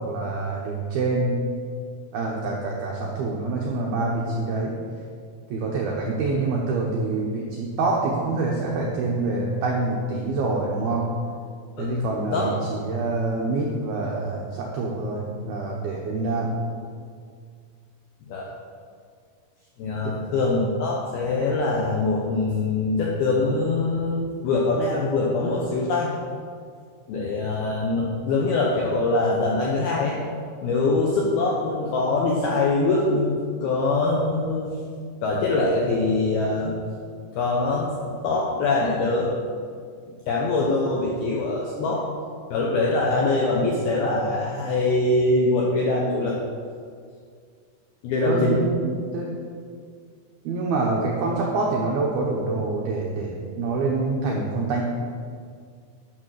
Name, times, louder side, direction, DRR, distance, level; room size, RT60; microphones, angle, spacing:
voice 1, 0.0-1.4 2.1-4.7 5.5-11.1 11.8-16.6 20.0-20.2 48.2-49.3 50.4-54.8, right 3 dB, 85° right, -2 dB, 2.2 m, -26 dB
voice 2, 11.8-12.5 18.3-18.5 19.8-24.2 24.4-26.1 27.1-30.2 30.6-34.7 35.2-36.7 37.3-39.3 40.3-42.1 42.5-46.4 48.0-48.6, left 3 dB, 80° left, -3 dB, 2.2 m, -23 dB
11.5 x 6.5 x 6.4 m, 2.1 s
omnidirectional pair, 5.9 m